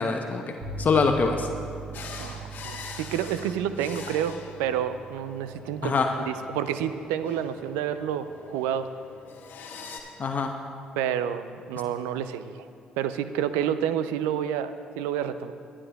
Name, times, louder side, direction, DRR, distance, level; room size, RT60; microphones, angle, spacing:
voice 1, 0.0-1.5 5.8-6.1 10.2-10.5, left 4 dB, 50° left, 4 dB, 0.8 m, -24 dB
sound 1, 0.6-8.3, right 4 dB, 70° right, 2.7 m, -42 dB
sound 2, 1.9-10.0, left 4 dB, 65° left, 1.2 m, -44 dB
voice 2, 2.2-5.9 6.2-8.9 11.0-12.6 13.0-15.5, right 9 dB, 85° right, 12 dB, 0.4 m, -29 dB
21.5 x 9.8 x 2.3 m, 2.4 s
hypercardioid pair, 50°, 4 cm